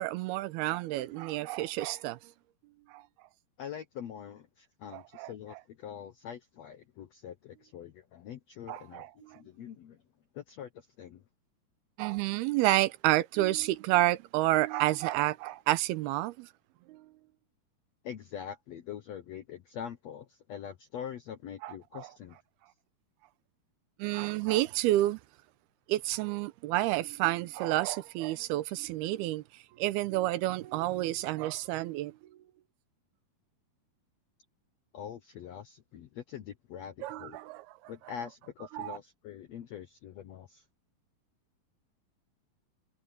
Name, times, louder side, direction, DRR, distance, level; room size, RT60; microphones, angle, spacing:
voice 1, 0.0-2.2 2.9-3.0 4.9-5.3 8.7-9.4 12.0-16.5 16.9-17.1 21.6-22.1 24.0-25.2 25.9-32.4 37.0-37.7 38.7-39.0, right 16 dB, 90° right, 2.8 m, -30 dB
voice 2, 3.6-10.0 10.3-11.2 18.0-22.4 34.9-37.4 37.9-40.6, left 9 dB, 80° left, 1.5 m, -44 dB
omnidirectional pair, 4.4 m